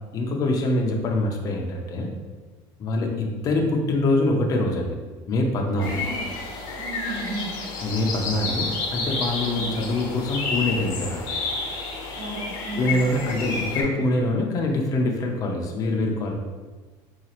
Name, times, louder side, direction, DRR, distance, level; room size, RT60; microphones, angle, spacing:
voice 1, 0.1-2.1 2.8-5.0 5.3-6.0 7.8-11.4 12.8-16.3, left 2 dB, 35° left, 1 dB, 0.5 m, -24 dB
sound 1, 5.8-13.8, left 3 dB, 85° left, 0.8 m, -30 dB
voice 2, 5.8-6.3 6.8-7.5 9.4-9.7 12.2-12.9, right 2 dB, 80° right, -6 dB, 1.5 m, -34 dB
4.0 x 2.4 x 2.9 m, 1.3 s
cardioid pair, 135°, 11 cm